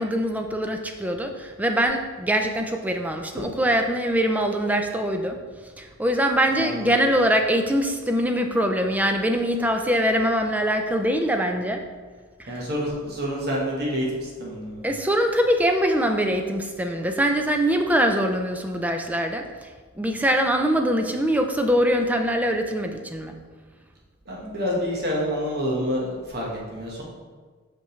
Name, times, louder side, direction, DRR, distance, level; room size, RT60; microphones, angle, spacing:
voice 1, 0.0-5.4 5.8-11.8 12.4-12.6 14.8-19.7 20.0-23.3, equal, 5° right, 5 dB, 0.4 m, -23 dB
voice 2, 6.6-7.0 12.5-14.9 24.3-27.0, equal, 45° right, -3 dB, 1.2 m, -28 dB
5.9 x 5.5 x 3.1 m, 1.5 s
head